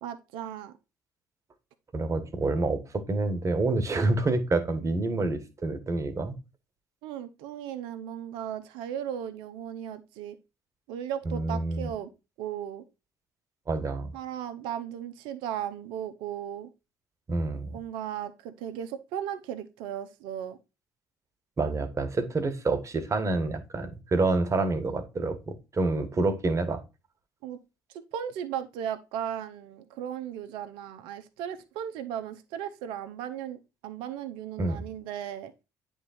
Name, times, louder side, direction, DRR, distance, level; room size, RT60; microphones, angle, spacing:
voice 1, 0.0-0.7 7.0-10.4 10.9-12.1 12.4-12.8 14.1-16.7 17.7-20.6 27.4-27.6 28.1-35.5, right 9 dB, 70° right, 10 dB, 0.7 m, -36 dB
voice 2, 1.9-6.3 11.2-11.9 13.7-14.1 17.3-17.8 21.6-26.8 34.6-34.8, right 3 dB, 35° right, 9 dB, 1.5 m, -28 dB
9.5 x 3.6 x 4.2 m, 0.27 s
hypercardioid pair, 55°, 9 cm